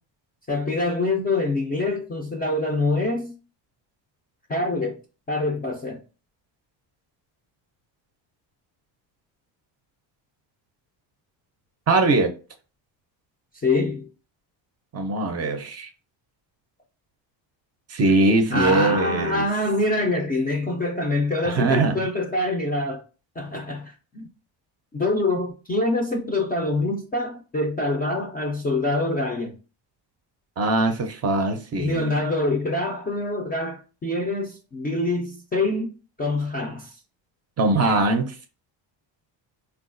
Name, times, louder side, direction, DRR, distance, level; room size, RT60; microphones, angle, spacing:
voice 1, 0.5-3.3 4.5-4.9 5.3-6.0 13.6-14.1 18.5-23.0 23.4-24.3 24.9-29.6 31.8-35.9 36.2-36.9, left 2 dB, 20° left, 0.3 m, -25 dB
voice 2, 11.9-12.3 14.9-15.9 17.9-19.5 21.4-22.1 30.6-32.1 37.6-38.4, right 2 dB, 35° right, 0.5 m, -21 dB
3.7 x 2.3 x 2.4 m
cardioid pair, 135°, 46 cm